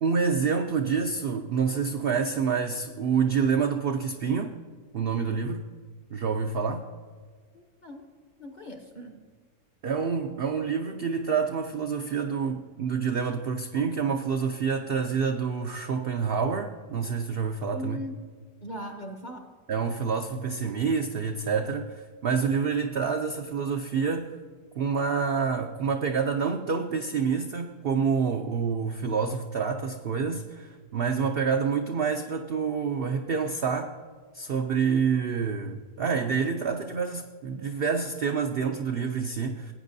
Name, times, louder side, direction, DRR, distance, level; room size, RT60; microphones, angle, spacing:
voice 1, 0.0-4.6 4.9-5.7 6.1-6.8 9.8-18.0 19.7-24.4 24.8-33.9 34.3-39.7, right 6 dB, 70° right, 4 dB, 0.5 m, -27 dB
voice 2, 7.5-8.1 8.4-9.2 17.7-18.2 18.6-19.5, equal, 40° left, 4 dB, 0.7 m, -39 dB
17.5 x 8.8 x 2.6 m, 1.5 s
omnidirectional pair, 1.6 m